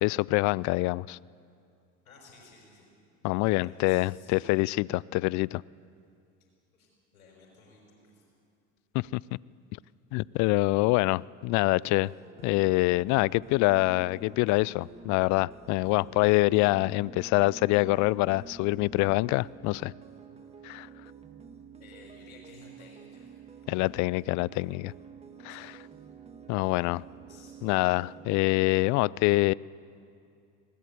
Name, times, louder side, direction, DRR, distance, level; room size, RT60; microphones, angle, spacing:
voice 1, 0.0-1.2 3.2-5.6 8.9-9.2 10.1-12.1 12.4-19.9 20.6-20.9 23.7-24.9 25.4-25.8 26.5-27.0 27.6-29.5, left 22 dB, 45° left, 25 dB, 0.4 m, -25 dB
voice 2, 2.0-2.9 3.4-4.5 6.7-8.2 21.8-23.4 25.5-25.7 27.3-27.5, left 3 dB, 80° left, -2 dB, 5.5 m, -55 dB
sound 1, 11.6-28.9, right 5 dB, 15° right, 1.7 m, -49 dB
20.0 x 18.0 x 8.1 m, 2.4 s
hypercardioid pair, 70°, 42 cm